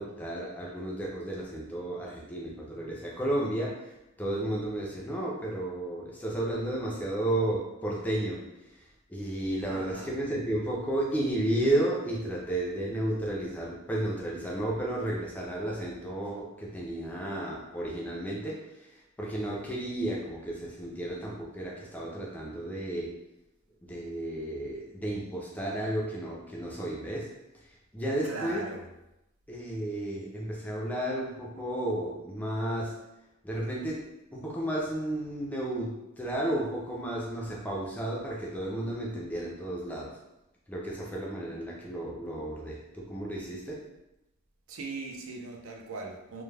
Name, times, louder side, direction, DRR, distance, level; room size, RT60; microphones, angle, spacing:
voice 1, 0.0-23.2 23.8-28.7 29.5-33.0 33.4-40.2 40.7-43.9, right 1 dB, 5° left, -3 dB, 0.3 m, -33 dB
voice 2, 9.7-10.1 28.2-28.8 44.7-46.4, right 3 dB, 70° right, 1 dB, 0.4 m, -39 dB
2.2 x 2.1 x 3.2 m, 0.91 s
head